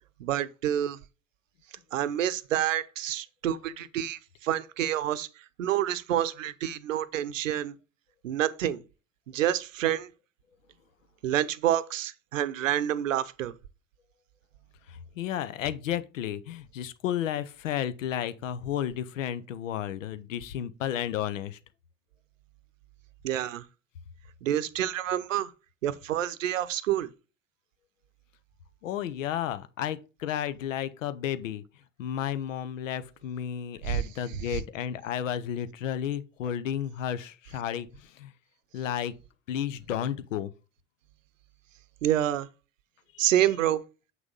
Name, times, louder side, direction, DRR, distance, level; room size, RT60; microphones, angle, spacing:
voice 1, 0.2-1.0 1.9-5.3 5.6-7.7 8.2-8.8 9.3-10.1 11.2-13.5 23.2-23.6 24.4-25.5 25.8-27.1 33.8-34.0 42.0-42.5 43.2-43.8, right 11 dB, 80° right, 0.7 m, -28 dB
voice 2, 14.9-21.6 28.8-31.6 32.0-38.3 38.7-39.1 39.5-40.5 43.1-43.3, left 10 dB, 80° left, 0.7 m, -32 dB
7.5 x 6.1 x 3.8 m
figure-of-eight pair, 65°, 38 cm